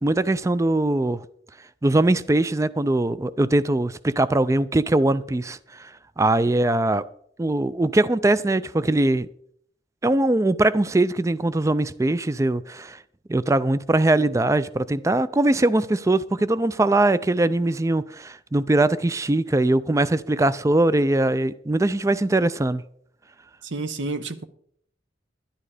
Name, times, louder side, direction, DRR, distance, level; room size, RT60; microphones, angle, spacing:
voice 1, 0.0-1.2 1.8-5.9 6.2-7.0 7.4-9.3 10.0-13.0 13.3-22.8, right 2 dB, 15° right, 0.4 m, -21 dB
voice 2, 23.6-24.4, right 3 dB, 80° right, 1.0 m, -30 dB
11.5 x 11.0 x 4.9 m
head